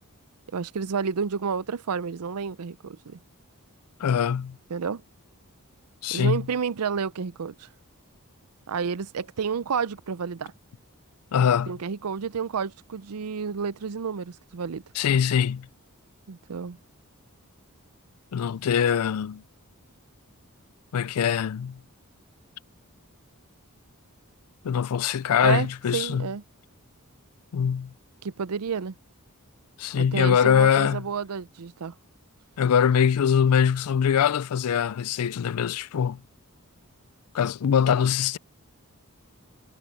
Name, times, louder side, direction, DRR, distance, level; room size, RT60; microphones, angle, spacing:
voice 1, 0.5-3.2 4.7-5.0 6.1-7.7 8.7-10.5 11.7-14.8 16.3-16.8 25.4-26.4 28.2-28.9 30.0-31.9, right 6 dB, 85° right, 0.6 m, -30 dB
voice 2, 4.0-4.6 6.0-6.4 11.3-11.8 15.0-15.7 18.3-19.4 20.9-21.8 24.6-26.3 27.5-27.9 29.8-31.0 32.6-36.2 37.3-38.4, left 8 dB, 80° left, 0.4 m, -23 dB
head